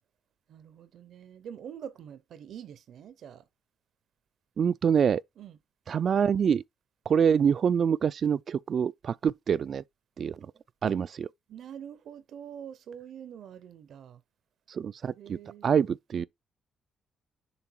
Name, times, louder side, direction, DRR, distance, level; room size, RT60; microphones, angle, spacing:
voice 1, 0.5-3.5 5.4-5.6 11.5-14.2 15.2-15.8, right 9 dB, 70° right, 0.7 m, -45 dB
voice 2, 4.6-5.2 5.9-6.6 7.1-9.8 10.2-10.4 10.8-11.3 14.7-15.4 15.6-16.3, right 7 dB, 55° right, 0.3 m, -25 dB
7.0 x 3.0 x 4.6 m
cardioid pair, 90°, 0 cm